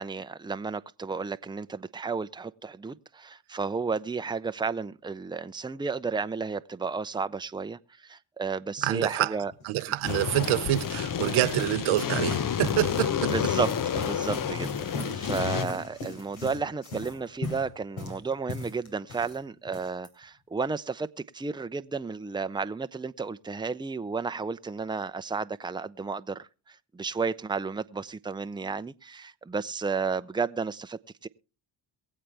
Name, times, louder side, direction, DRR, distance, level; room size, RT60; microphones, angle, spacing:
voice 1, 0.0-9.5 13.3-21.1 21.3-31.3, right 4 dB, 10° right, 0.6 m, -32 dB
voice 2, 8.8-9.4 9.6-13.3, right 15 dB, 80° right, 0.7 m, -27 dB
sound 1, 9.4-19.4 19.7-20.1, left 2 dB, 75° left, 3.3 m, -39 dB
sound 2, 10.1-15.6, left 9 dB, 45° left, 0.8 m, -30 dB
23.0 x 7.7 x 3.4 m
supercardioid pair, 55°, 48 cm